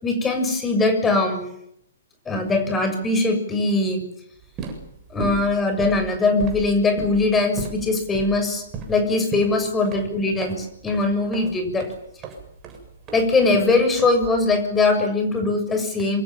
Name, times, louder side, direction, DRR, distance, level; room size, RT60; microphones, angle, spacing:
voice 1, 0.0-1.5 2.3-4.1 5.1-11.9 13.1-16.2, left 3 dB, 10° left, 6 dB, 7.0 m, -21 dB
sound 1, 4.4-14.6, right 4 dB, 25° right, 7.7 m, -36 dB
27.0 x 25.5 x 7.6 m, 0.75 s
figure-of-eight pair, 120°, 0 cm